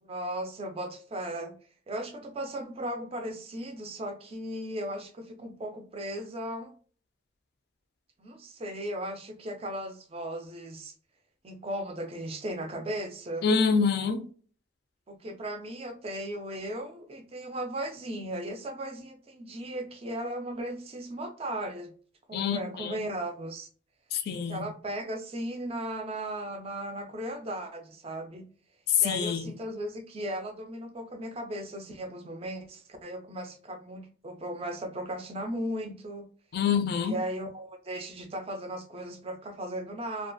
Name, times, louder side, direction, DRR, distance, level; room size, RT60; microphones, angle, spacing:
voice 1, 0.0-1.6 1.9-6.7 8.2-10.9 11.4-13.5 15.1-21.9 22.3-23.7 24.5-28.4 29.0-36.3 37.0-40.3, right 1 dB, 30° right, 0.4 m, -36 dB
voice 2, 13.4-14.3 22.3-23.0 24.1-24.7 28.9-29.5 36.5-37.2, left 6 dB, 55° left, 0.3 m, -26 dB
2.4 x 2.2 x 2.5 m
head